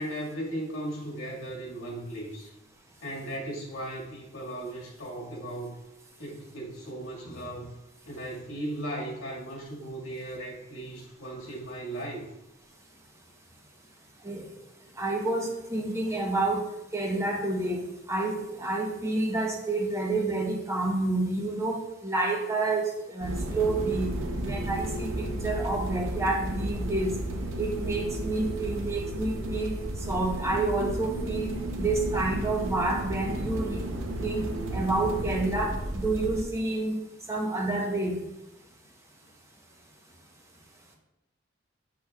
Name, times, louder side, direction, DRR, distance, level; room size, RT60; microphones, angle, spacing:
voice 1, 0.0-2.5 3.0-5.8 6.2-7.8 8.0-12.2, right 1 dB, 90° left, -3 dB, 1.9 m, -37 dB
voice 2, 15.0-16.6 16.9-24.1 24.4-27.2 27.6-29.7 30.1-33.9 34.2-34.4 34.7-37.0 37.3-38.2, right 2 dB, 15° right, 0 dB, 0.8 m, -29 dB
sound 1, 23.2-36.4, right 1 dB, 80° right, 0.8 m, -33 dB
8.1 x 6.2 x 2.4 m, 0.92 s
head